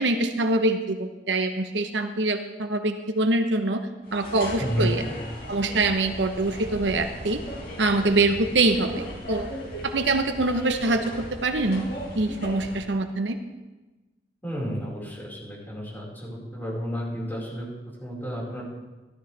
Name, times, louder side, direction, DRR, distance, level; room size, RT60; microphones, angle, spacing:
voice 1, 0.0-3.8 4.1-5.0 5.5-7.4 7.8-9.5 9.8-11.0 11.3-11.8 12.1-13.4, right 2 dB, 80° right, 7 dB, 1.0 m, -24 dB
sound 1, 4.0-12.9, equal, 60° left, 4.6 m, -37 dB
voice 2, 4.6-4.9 14.4-17.7 18.0-18.6, equal, 10° left, -6 dB, 4.7 m, -31 dB
15.0 x 13.0 x 3.4 m, 1.1 s
head